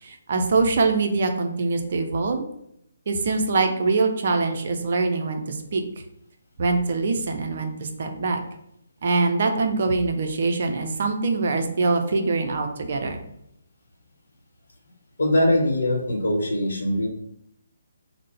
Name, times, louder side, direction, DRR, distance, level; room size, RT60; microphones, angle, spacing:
voice 1, 0.0-2.5 3.1-5.8 6.6-8.4 9.0-13.2, right 3 dB, 45° right, 5 dB, 0.5 m, -23 dB
voice 2, 15.2-17.1, left 1 dB, 60° left, 2 dB, 0.9 m, -22 dB
3.7 x 2.1 x 4.2 m, 0.74 s
figure-of-eight pair, 140°, 0 cm